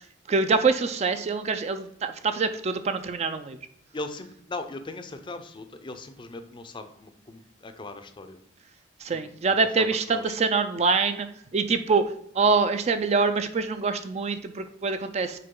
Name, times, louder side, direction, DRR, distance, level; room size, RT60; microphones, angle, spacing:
voice 1, 0.3-3.6 9.0-11.3 11.5-15.4, right 4 dB, 35° right, 9 dB, 0.3 m, -25 dB
voice 2, 3.9-8.4 9.1-10.4, left 2 dB, 25° left, 9 dB, 0.5 m, -39 dB
6.6 x 4.3 x 3.8 m, 0.73 s
head